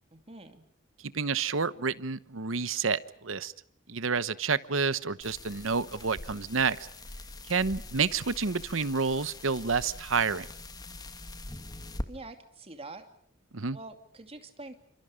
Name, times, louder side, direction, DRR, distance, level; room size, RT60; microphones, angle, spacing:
voice 1, 0.1-0.7 12.1-13.1 13.7-14.7, right 2 dB, 30° right, 6 dB, 2.6 m, -45 dB
voice 2, 1.1-3.5 3.9-6.8 7.5-10.5 13.5-13.8, right 5 dB, 75° right, 15 dB, 1.0 m, -29 dB
sound 1, 5.2-12.1, left 1 dB, 20° left, 1.6 m, -43 dB
29.5 x 26.0 x 5.1 m, 0.66 s
head